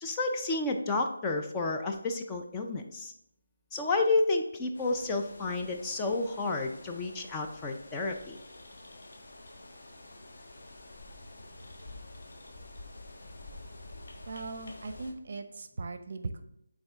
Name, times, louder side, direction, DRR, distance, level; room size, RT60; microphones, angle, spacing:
voice 1, 0.0-3.1 3.7-8.4, left 3 dB, 15° left, 2 dB, 0.4 m, -30 dB
sound 1, 4.7-15.1, left 2 dB, 55° left, 1.1 m, -48 dB
voice 2, 14.3-16.4, right 3 dB, 50° right, 8 dB, 0.6 m, -39 dB
7.9 x 3.6 x 3.5 m, 0.77 s
figure-of-eight pair, 165°, 0 cm